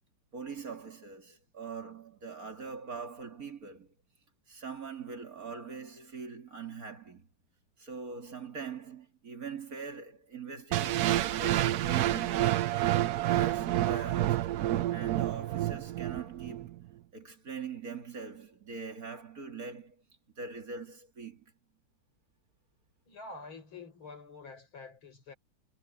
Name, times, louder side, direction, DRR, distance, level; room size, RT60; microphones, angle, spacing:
voice 1, 0.3-3.9 4.5-7.3 7.8-12.4 13.3-14.5 14.9-16.8 17.1-20.0 20.4-21.4, right 5 dB, 45° right, 2.8 m, -42 dB
sound 1, 10.7-16.7, right 14 dB, 70° right, 1.0 m, -29 dB
voice 2, 23.1-25.3, left 3 dB, 80° left, 5.8 m, -47 dB
omnidirectional pair, 2.2 m